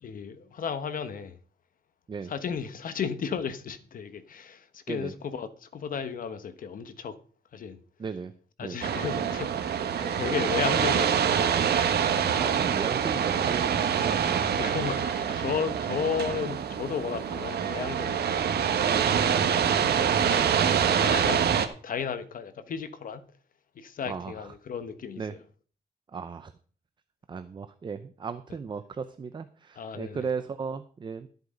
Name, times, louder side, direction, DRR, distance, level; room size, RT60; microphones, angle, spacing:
voice 1, 0.0-1.4 2.2-7.2 7.5-7.8 8.6-11.8 14.5-18.7 20.2-20.7 21.0-21.5 21.8-23.2 23.7-25.4 29.7-30.3, left 7 dB, 55° left, 1.2 m, -34 dB
voice 2, 8.0-8.3 8.6-8.8 10.2-10.4 12.4-14.4 19.4-19.6 24.1-24.5 25.2-25.3 26.1-26.5 27.3-31.3, right 5 dB, 30° right, 0.6 m, -36 dB
sound 1, 8.8-21.7, right 8 dB, 80° right, 1.3 m, -25 dB
13.0 x 8.0 x 5.2 m
wide cardioid pair, 160°, 16 cm